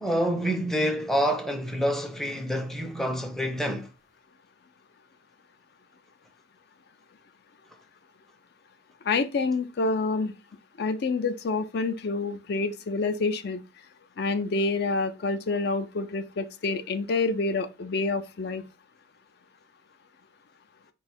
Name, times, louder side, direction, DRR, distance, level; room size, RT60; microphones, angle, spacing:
voice 1, 0.0-3.9, equal, ahead, 0.5 m, -27 dB
voice 2, 9.0-10.3 10.8-13.6 14.2-18.7, left 3 dB, 55° left, 0.4 m, -27 dB
4.7 x 2.3 x 4.1 m
head